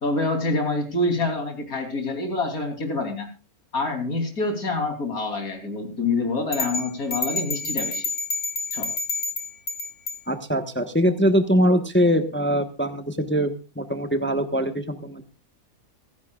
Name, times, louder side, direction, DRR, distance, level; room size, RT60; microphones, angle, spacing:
voice 1, 0.0-3.3 3.7-8.1 8.7-8.9, left 2 dB, 75° left, 4 dB, 3.8 m, -26 dB
sound 1, 6.5-10.2, left 3 dB, 50° left, 2.6 m, -29 dB
voice 2, 10.3-15.2, equal, 10° left, 7 dB, 1.0 m, -22 dB
25.0 x 11.5 x 2.4 m, 0.30 s
omnidirectional pair, 1.5 m